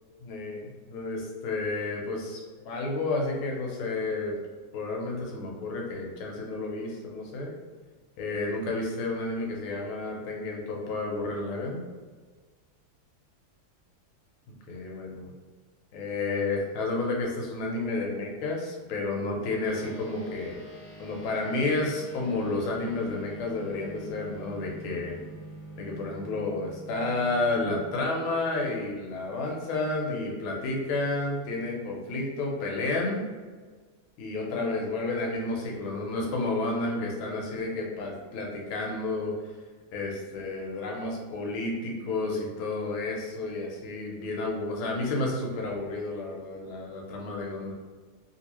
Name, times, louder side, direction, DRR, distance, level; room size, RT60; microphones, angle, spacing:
voice 1, 0.2-4.3 4.7-7.5 8.2-11.8 14.7-15.3 15.9-20.6 21.0-25.2 25.8-33.2 34.2-39.3 39.9-47.7, left 2 dB, 85° left, -1 dB, 1.6 m, -31 dB
sound 1, 19.6-29.4, right 1 dB, 65° left, 1.3 m, -46 dB
3.1 x 3.0 x 2.9 m, 1.4 s
omnidirectional pair, 2.2 m